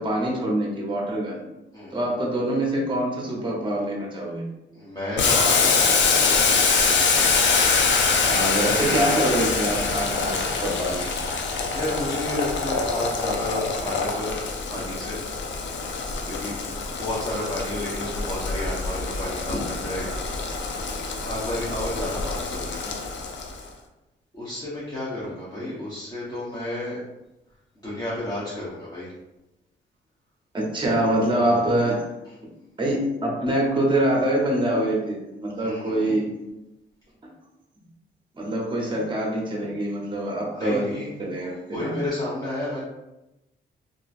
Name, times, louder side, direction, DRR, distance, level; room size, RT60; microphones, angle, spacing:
voice 1, 0.0-1.4 1.9-4.5 8.3-11.1 25.6-25.7 30.5-32.1 32.8-36.3 38.3-40.8 41.2-42.0, right 1 dB, 25° right, -1 dB, 0.7 m, -25 dB
voice 2, 1.7-2.1 4.7-6.4 11.7-15.2 16.2-16.6 16.8-20.1 21.2-22.9 24.3-27.0 27.8-29.1 31.3-31.6 35.5-36.2 40.6-41.1 41.4-42.8, left 1 dB, 20° left, -9 dB, 0.9 m, -31 dB
Boiling, 5.2-23.6, left 4 dB, 75° left, 0.5 m, -24 dB
2.9 x 2.5 x 2.4 m, 0.96 s
cardioid pair, 95°, 19 cm